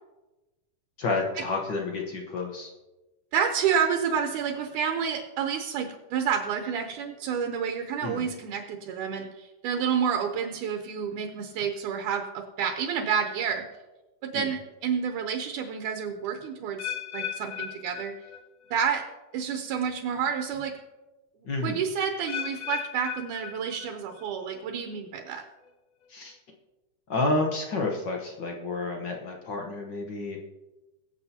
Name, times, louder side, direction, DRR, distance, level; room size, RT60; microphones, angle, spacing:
voice 1, 1.0-2.7 8.0-8.3 14.3-14.5 21.4-21.8 26.1-26.4 27.1-30.4, left 3 dB, 60° left, 1 dB, 1.1 m, -30 dB
voice 2, 3.3-13.6 14.2-18.1 18.7-19.0 19.3-20.8 21.6-25.4, right 7 dB, 80° right, 4 dB, 2.3 m, -29 dB
sound 1, 16.8-18.8 19.1-19.5 20.2-20.3 22.3-24.2 24.5-25.0 25.6-25.7, left 10 dB, 85° left, 1.2 m, -37 dB
22.5 x 7.7 x 2.8 m, 1.1 s
omnidirectional pair, 3.6 m